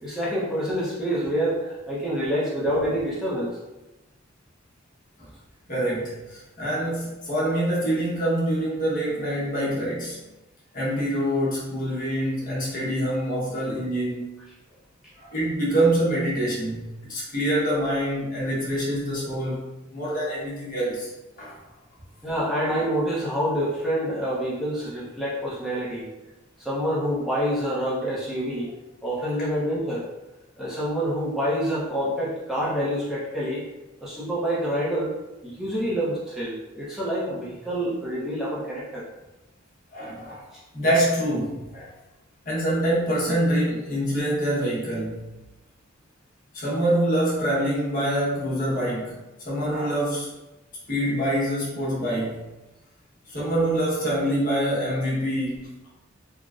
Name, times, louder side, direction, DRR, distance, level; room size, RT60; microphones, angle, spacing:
voice 1, 0.0-3.6 22.2-26.1 26.6-28.7 29.0-30.0 30.6-33.6 34.0-35.1 35.4-39.0, equal, ahead, -9 dB, 0.6 m, -27 dB
voice 2, 5.7-10.2 10.7-14.3 15.2-19.7 19.9-21.1 21.4-21.5 39.9-40.4 40.7-41.9 42.4-45.3 46.5-50.3 50.9-52.5 53.3-55.7, right 1 dB, 45° left, -7 dB, 1.0 m, -25 dB
3.7 x 2.1 x 2.4 m, 1.0 s
head